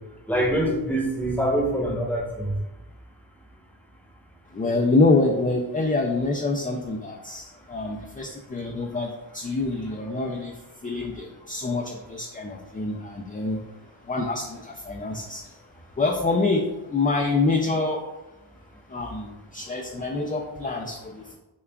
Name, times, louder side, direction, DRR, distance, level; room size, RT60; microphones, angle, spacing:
voice 1, 0.3-2.5, right 1 dB, 5° left, -1 dB, 0.9 m, -24 dB
voice 2, 4.5-13.7 14.0-15.6 16.0-18.1 18.9-21.4, left 3 dB, 20° left, 0 dB, 0.3 m, -26 dB
6.8 x 2.3 x 2.2 m, 1.0 s
wide cardioid pair, 55°, 48 cm